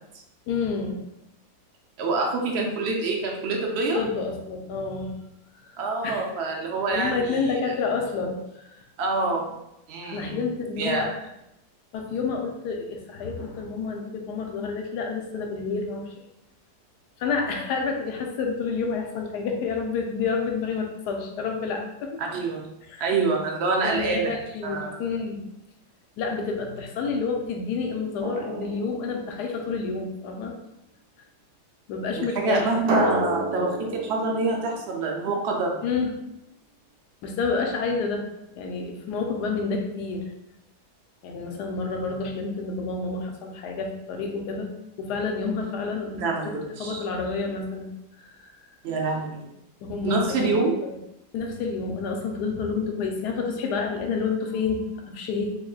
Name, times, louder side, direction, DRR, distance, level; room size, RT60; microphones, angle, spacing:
voice 1, 0.5-1.0 3.9-5.1 6.0-6.3 6.9-8.8 10.0-11.1 11.9-16.2 17.2-22.2 22.9-23.0 23.8-25.4 26.2-30.5 31.9-32.8 35.8-36.1 37.2-40.3 41.2-44.7 45.0-47.9 48.2-48.5 49.8-50.5 51.3-55.6, left 4 dB, 80° left, 2 dB, 1.2 m, -29 dB
voice 2, 2.0-4.0 5.8-7.8 9.0-9.5 9.9-10.4 10.8-11.1 22.2-22.7 23.0-24.3 24.6-24.9 32.2-35.8 46.2-47.0 48.8-49.4 50.0-50.7, right 3 dB, 70° right, 0 dB, 0.6 m, -26 dB
Drum, 28.2-29.8 32.9-35.6, right 1 dB, 90° right, 1.4 m, -31 dB
3.6 x 3.6 x 2.3 m, 0.85 s
omnidirectional pair, 1.8 m